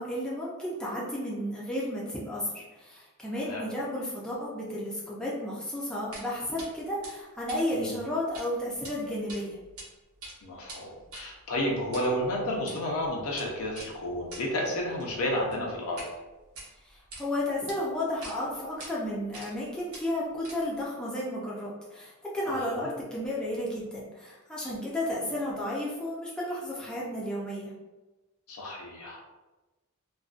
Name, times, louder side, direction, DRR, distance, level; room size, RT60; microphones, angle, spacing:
voice 1, 0.0-9.6 16.8-27.7, left 1 dB, 5° left, -7 dB, 0.4 m, -33 dB
sound 1, 6.1-6.3 6.6-6.7 7.0-8.5 8.7-8.9 9.3-9.9 10.1-16.1 16.4-17.2 17.7-17.8 18.2-18.4 18.8-18.9 19.3-19.6 19.9-20.8, right 2 dB, 65° right, 0.7 m, -45 dB
voice 2, 10.4-16.0 22.5-22.9 28.5-29.2, left 1 dB, 75° left, -2 dB, 0.6 m, -31 dB
2.4 x 2.2 x 2.4 m, 1.1 s
head